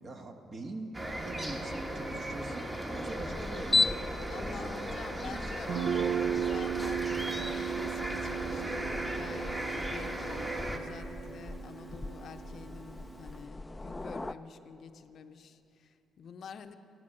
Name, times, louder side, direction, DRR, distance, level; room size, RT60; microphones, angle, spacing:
voice 1, 0.0-4.0 4.4-5.4, right 2 dB, 45° right, 4 dB, 1.4 m, -44 dB
sound 1, 0.9-10.8, right 1 dB, 20° right, 1.3 m, -37 dB
sound 2, 3.0-14.3, left 3 dB, 15° left, 0.4 m, -38 dB
voice 2, 4.3-16.8, left 6 dB, 60° left, 8 dB, 0.6 m, -48 dB
Guitar, 5.7-13.4, right 9 dB, 65° right, 0.3 m, -36 dB
14.5 x 11.0 x 6.2 m, 2.8 s
cardioid pair, 90°, 0 cm